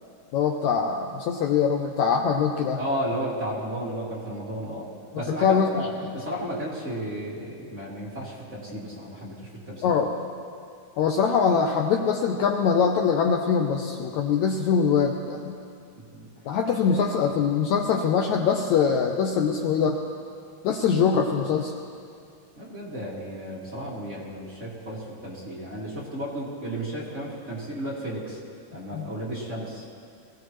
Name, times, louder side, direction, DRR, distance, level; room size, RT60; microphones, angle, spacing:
voice 1, 0.3-2.8 5.3-5.9 9.8-10.1 11.0-15.6 16.5-20.0 20.6-21.7 28.9-29.1, left 6 dB, 75° left, 2 dB, 1.8 m, -23 dB
voice 2, 2.7-4.9 5.1-9.4 9.7-9.9 16.1-16.3 16.6-17.1 22.6-28.4 28.7-29.9, equal, 25° right, -7 dB, 2.1 m, -33 dB
22.5 x 16.5 x 3.1 m, 2.4 s
omnidirectional pair, 3.8 m